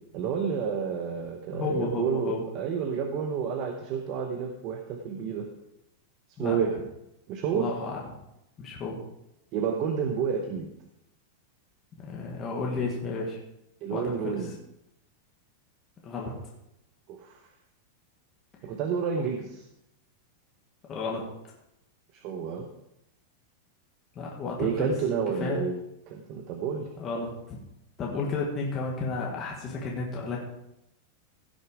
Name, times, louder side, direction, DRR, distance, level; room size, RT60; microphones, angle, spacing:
voice 1, 0.1-5.5 6.4-6.7 7.3-7.7 9.5-10.7 13.8-14.5 17.1-17.4 18.6-19.6 22.2-22.7 24.6-25.7 26.1-26.9, right 6 dB, 30° right, 3 dB, 1.0 m, -30 dB
voice 2, 1.5-2.4 6.4-6.6 7.5-8.0 8.6-9.0 12.0-13.4 13.9-14.5 16.0-16.3 20.9-21.2 24.1-24.9 25.4-25.6 27.0-27.6 28.0-30.4, left 3 dB, 20° left, -2 dB, 1.5 m, -32 dB
16.0 x 6.6 x 4.8 m, 0.85 s
supercardioid pair, 180°, 0 cm